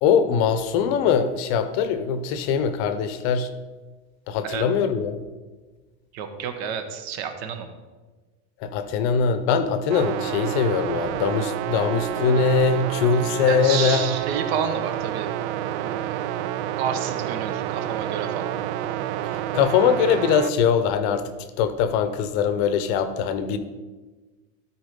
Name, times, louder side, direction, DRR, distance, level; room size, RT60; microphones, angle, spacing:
voice 1, 0.0-3.5 4.3-5.2 8.6-14.1 19.5-21.3 21.6-23.6, left 6 dB, 45° left, 11 dB, 0.8 m, -22 dB
voice 2, 6.1-7.7 13.5-15.3 15.7-16.3 16.8-18.5, right 7 dB, 65° right, 7 dB, 1.3 m, -30 dB
sound 1, 9.9-20.5, right 13 dB, 85° right, 0.5 m, -29 dB
13.0 x 4.5 x 5.2 m, 1.3 s
supercardioid pair, 165°, 34 cm